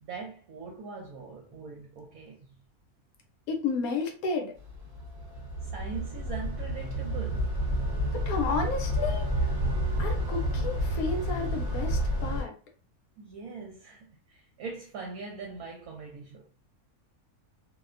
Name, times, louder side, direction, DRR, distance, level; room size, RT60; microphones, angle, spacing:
voice 1, 0.0-2.5 5.6-7.5 13.2-16.4, right 5 dB, 75° right, 1.0 m, -41 dB
voice 2, 3.5-4.6 8.1-9.5 10.0-12.5, left 4 dB, 75° left, 1.0 m, -32 dB
sound 1, 4.6-12.4, equal, 45° right, 0.9 m, -30 dB
2.6 x 2.1 x 2.4 m
omnidirectional pair, 1.6 m